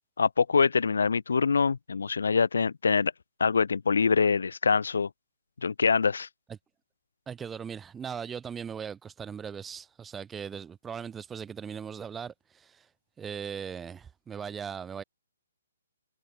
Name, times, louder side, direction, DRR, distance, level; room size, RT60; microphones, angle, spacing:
voice 1, 0.2-3.1 3.4-5.1 5.6-6.3, left 5 dB, 70° left, 0.7 m, -24 dB
voice 2, 7.3-12.9 13.2-15.0, right 7 dB, 10° right, 1.8 m, -39 dB
figure-of-eight pair, 135°, 0 cm